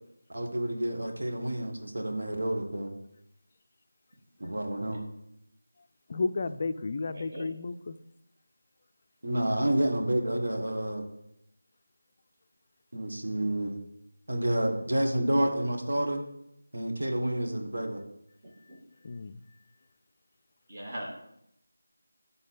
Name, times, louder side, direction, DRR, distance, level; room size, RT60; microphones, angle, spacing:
voice 1, 0.3-2.9 4.4-5.0 9.2-11.0 12.9-13.8 14.3-16.2 16.7-18.0, right 1 dB, 65° right, 2 dB, 1.5 m, -29 dB
voice 2, 6.1-8.0 19.0-19.4, left 3 dB, 35° left, 10 dB, 0.4 m, -32 dB
voice 3, 7.1-7.5 18.4-18.5 20.7-21.1, right 1 dB, 30° right, -3 dB, 2.0 m, -39 dB
8.4 x 3.9 x 5.7 m, 0.80 s
figure-of-eight pair, 165°, 0 cm